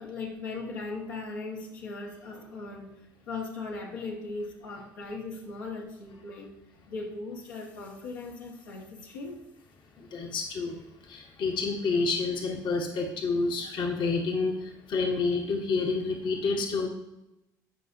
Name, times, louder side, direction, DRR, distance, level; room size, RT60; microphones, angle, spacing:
voice 1, 0.0-6.6 6.9-9.5, left 3 dB, 85° left, -2 dB, 1.6 m, -38 dB
voice 2, 10.0-10.8 11.1-16.9, left 4 dB, 50° left, 2 dB, 1.2 m, -29 dB
14.0 x 5.5 x 2.7 m, 0.92 s
hypercardioid pair, 65°, 10 cm